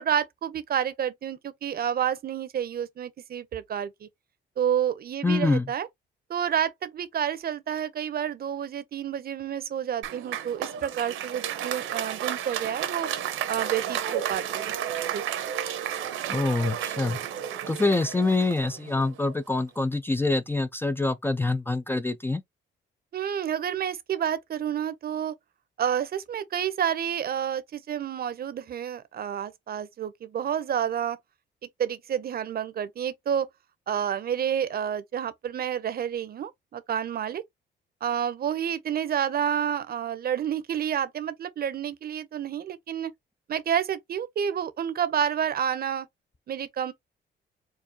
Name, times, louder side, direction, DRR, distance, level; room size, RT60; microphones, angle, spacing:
voice 1, 0.0-4.1 4.6-5.9 6.3-13.1 13.5-14.8 15.1-15.2 23.1-25.3 25.8-31.2 31.8-33.5 33.9-37.4 38.0-43.1 43.5-46.1 46.5-46.9, right 9 dB, 50° right, 0.7 m, -29 dB
voice 2, 5.2-5.7 16.3-17.2 17.7-22.4, left 3 dB, 10° left, 0.4 m, -25 dB
Applause, 10.0-19.4, right 10 dB, 85° right, 1.0 m, -32 dB
4.6 x 2.4 x 2.7 m
cardioid pair, 90°, 20 cm